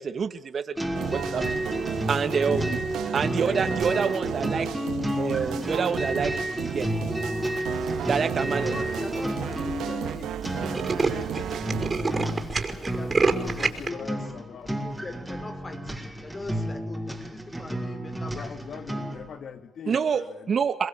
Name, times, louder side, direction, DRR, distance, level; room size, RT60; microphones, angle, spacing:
voice 1, 0.0-1.8 2.1-2.8 3.1-4.7 5.2-6.9 8.0-8.7 19.9-20.9, right 6 dB, 50° right, 2.3 m, -27 dB
sound 1, 0.8-19.3, equal, 5° right, 5.8 m, -31 dB
sound 2, 0.9-12.1, right 10 dB, 80° right, 2.0 m, -34 dB
Tools, 7.8-8.2 8.9-9.0 9.2-9.3 9.5-9.7 10.0-10.1 10.4-13.9, right 4 dB, 30° right, 5.6 m, -27 dB
voice 2, 8.4-12.2 12.9-14.3 14.7-18.5 18.8-19.2, left 3 dB, 25° left, 4.7 m, -41 dB
voice 3, 13.5-14.9 18.3-20.5, left 7 dB, 60° left, 2.2 m, -42 dB
29.0 x 21.5 x 8.9 m
cardioid pair, 90°, 0 cm